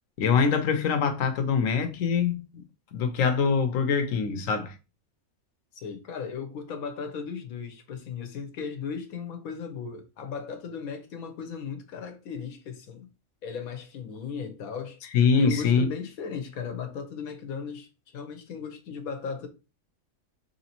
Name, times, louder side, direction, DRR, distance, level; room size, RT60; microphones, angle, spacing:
voice 1, 0.2-2.6 2.9-4.7 15.1-15.9, left 6 dB, 70° left, 1.0 m, -24 dB
voice 2, 5.7-13.1 13.4-15.0 15.4-19.5, left 6 dB, 90° left, 1.2 m, -36 dB
4.1 x 3.2 x 2.9 m
omnidirectional pair, 1.5 m